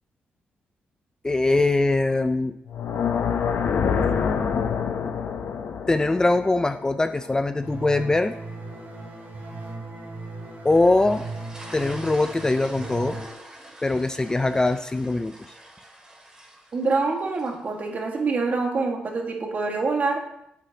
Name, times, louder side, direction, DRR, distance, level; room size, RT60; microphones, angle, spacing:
voice 1, 1.2-2.6 5.9-8.3 10.6-11.3 11.7-13.2 13.8-15.3, left 2 dB, 20° left, 9 dB, 0.4 m, -22 dB
sound 1, 2.7-7.8, left 6 dB, 70° left, 0.8 m, -26 dB
sound 2, 7.6-13.2, right 3 dB, 70° right, 2.3 m, -37 dB
sound 3, 10.7-18.0, right 1 dB, 15° right, 2.3 m, -45 dB
voice 2, 16.7-20.2, right 3 dB, 45° right, 1 dB, 1.8 m, -25 dB
9.6 x 8.1 x 2.9 m, 0.79 s
cardioid pair, 90°, 4 cm